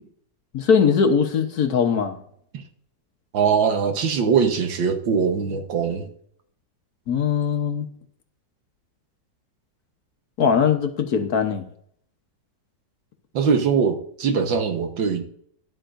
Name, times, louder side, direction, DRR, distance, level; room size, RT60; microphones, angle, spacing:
voice 1, 0.5-2.2 7.1-7.9 10.4-11.6, left 6 dB, 60° left, 6 dB, 1.4 m, -20 dB
voice 2, 3.3-6.1 13.3-15.2, right 6 dB, 85° right, 6 dB, 1.9 m, -22 dB
13.0 x 11.5 x 2.6 m, 0.65 s
omnidirectional pair, 2.0 m